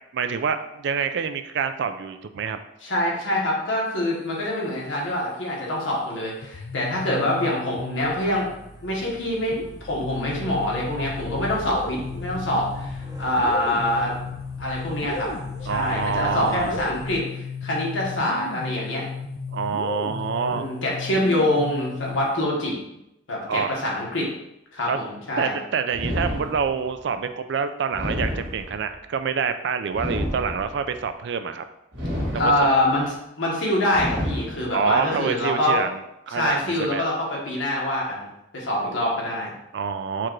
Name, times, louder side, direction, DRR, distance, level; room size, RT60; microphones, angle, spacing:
voice 1, 0.1-2.6 15.7-16.8 19.5-20.7 23.5-23.7 24.9-25.0 25.4-31.6 32.3-32.5 34.7-37.1 39.7-40.3, right 6 dB, 65° right, 9 dB, 0.3 m, -27 dB
voice 2, 2.8-8.5 8.8-14.1 14.6-15.3 15.6-19.0 20.5-22.7 23.3-24.3 24.7-25.6 32.3-35.8 36.3-38.3 38.5-39.5, left 1 dB, 80° left, -3 dB, 1.3 m, -25 dB
sound 1, 6.4-8.6 9.5-22.4, left 5 dB, 55° left, 0.4 m, -34 dB
sound 2, 7.9-17.2, equal, 20° right, 0.7 m, -42 dB
sound 3, 25.9-27.0 27.9-29.0 29.9-31.0 31.9-33.0 33.9-35.0, equal, 80° right, 1.6 m, -30 dB
4.6 x 2.5 x 4.5 m, 0.86 s
head